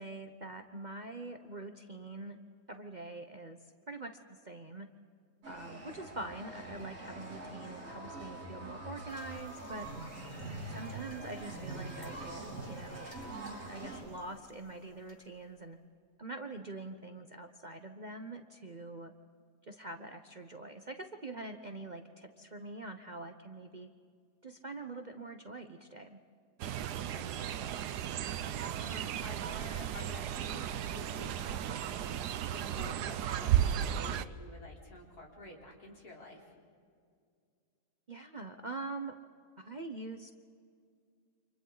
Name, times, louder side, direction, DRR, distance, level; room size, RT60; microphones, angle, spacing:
voice 1, 0.0-2.4 2.7-3.6 3.9-4.9 5.5-9.9 10.7-13.1 13.7-15.8 16.2-19.1 19.7-23.9 24.4-26.2 38.1-39.1 39.6-40.3, right 2 dB, 35° right, 6 dB, 0.9 m, -44 dB
sound 1, 5.4-14.0, right 2 dB, 55° right, 5.9 m, -44 dB
sound 2, 9.1-15.6, equal, 25° left, 2.0 m, -56 dB
Fowl, 26.6-34.3, right 10 dB, 85° right, 1.3 m, -34 dB
voice 2, 27.1-27.5 28.0-28.5 28.8-36.5, left 1 dB, 75° left, -2 dB, 4.4 m, -51 dB
29.5 x 27.0 x 4.0 m, 2.2 s
omnidirectional pair, 1.7 m